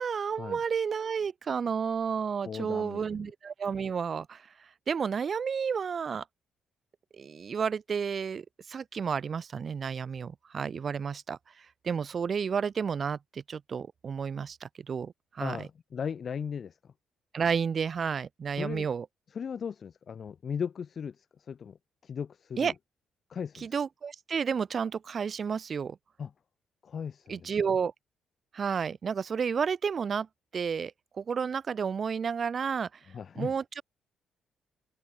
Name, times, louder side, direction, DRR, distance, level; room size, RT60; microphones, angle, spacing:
voice 1, 0.0-6.2 7.1-15.7 17.3-19.1 22.6-22.7 23.6-26.0 27.3-27.9 28.5-30.3 30.5-32.9 33.4-33.8, right 6 dB, 45° right, 0.3 m, -31 dB
voice 2, 2.4-3.3 15.4-16.9 18.6-18.9 19.3-21.8 22.0-22.7 23.3-23.7 26.2-26.3 26.8-27.5 33.1-33.5, left 7 dB, 50° left, 0.5 m, -37 dB
open air
cardioid pair, 90°, 0 cm